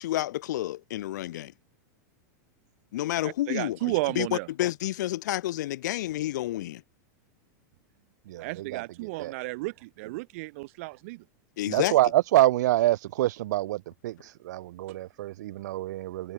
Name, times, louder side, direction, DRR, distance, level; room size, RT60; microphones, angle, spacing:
voice 1, 0.0-1.5 2.9-6.8 11.6-11.9, left 14 dB, 70° left, 0.7 m, -30 dB
voice 2, 3.2-4.5 8.4-11.2, right 24 dB, 45° right, 0.4 m, -33 dB
voice 3, 8.3-9.3 11.7-16.3, right 15 dB, 65° right, 1.0 m, -26 dB
supercardioid pair, 160°, 10 cm